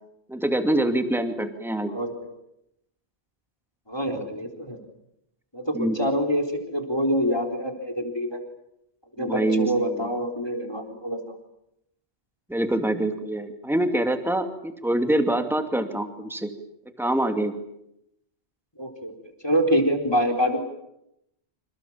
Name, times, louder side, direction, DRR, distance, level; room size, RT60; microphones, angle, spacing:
voice 1, 0.3-1.9 5.7-6.0 9.2-10.1 12.5-16.5 17.0-17.5, right 1 dB, ahead, 6 dB, 2.5 m, -25 dB
voice 2, 3.9-4.8 5.5-8.4 9.2-11.4 18.8-19.1 19.4-20.6, equal, 25° left, 4 dB, 4.1 m, -25 dB
28.5 x 27.5 x 7.4 m, 0.81 s
omnidirectional pair, 1.1 m